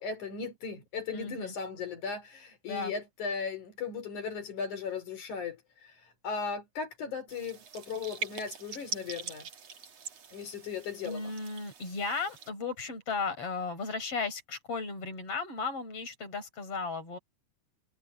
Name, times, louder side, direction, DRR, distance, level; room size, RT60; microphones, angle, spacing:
voice 1, 0.0-5.9 6.2-9.5 10.3-11.3, left 5 dB, 75° left, 4.9 m, -37 dB
voice 2, 1.1-1.5 2.7-2.9 11.0-17.2, left 4 dB, 50° left, 7.0 m, -35 dB
sound 1, 7.3-12.5, right 6 dB, 55° right, 3.3 m, -43 dB
omnidirectional pair, 3.5 m